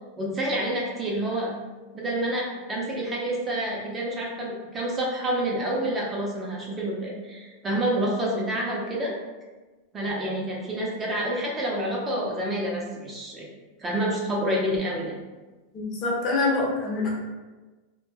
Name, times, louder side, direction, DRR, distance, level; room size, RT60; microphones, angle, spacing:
voice 1, 0.2-1.5 1.9-9.2 9.9-13.5 13.8-15.2, right 1 dB, 20° right, -3 dB, 0.5 m, -28 dB
voice 2, 15.7-17.1, left 3 dB, 35° left, -3 dB, 0.7 m, -25 dB
2.1 x 2.0 x 3.3 m, 1.2 s
supercardioid pair, 135°, 0 cm